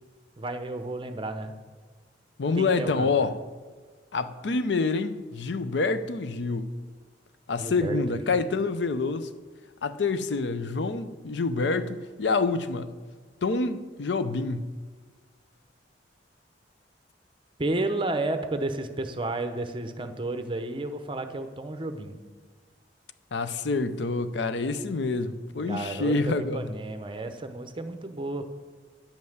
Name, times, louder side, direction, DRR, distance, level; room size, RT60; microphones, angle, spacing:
voice 1, 0.4-1.6 2.6-3.3 7.6-8.5 17.6-22.2 25.6-28.5, right 2 dB, 30° right, 0.7 m, -32 dB
voice 2, 2.4-3.4 4.1-6.7 7.5-9.3 9.8-12.9 13.4-14.8 23.3-26.7, left 3 dB, 70° left, 0.5 m, -27 dB
10.5 x 5.5 x 7.9 m
head